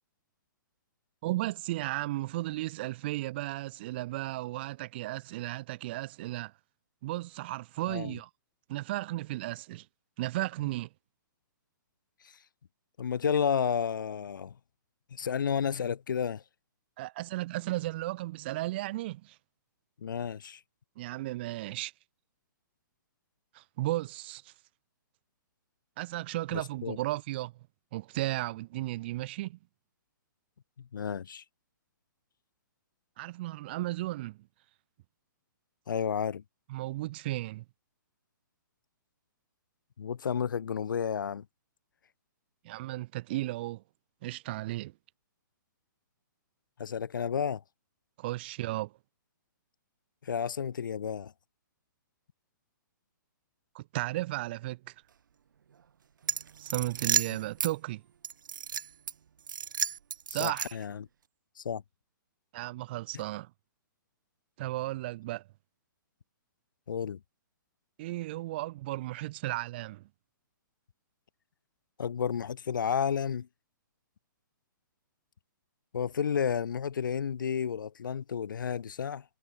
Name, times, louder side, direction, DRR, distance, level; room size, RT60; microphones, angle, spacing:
voice 1, 1.2-6.5 7.0-8.3 8.7-9.9 10.2-10.9 17.0-19.4 21.0-21.9 23.5-24.5 26.0-27.5 27.9-29.6 33.2-34.4 36.7-37.6 42.6-43.8 44.2-44.9 48.2-48.9 53.7-54.9 56.6-58.0 60.3-60.8 62.5-63.5 64.6-65.5 68.0-70.1, right 17 dB, 30° right, 2.9 m, -34 dB
voice 2, 7.9-8.2 13.0-14.5 15.1-16.4 20.0-20.6 26.5-27.0 30.8-31.4 35.9-36.4 40.0-41.4 46.8-47.6 50.2-51.3 60.4-61.1 61.6-61.8 63.1-63.2 66.9-67.2 72.0-73.5 75.9-79.2, left 7 dB, 75° left, 2.8 m, -31 dB
sound 1, 56.2-57.7 58.2-59.1 59.5-60.9, right 8 dB, 70° right, 1.0 m, -32 dB
hypercardioid pair, 170°, 11 cm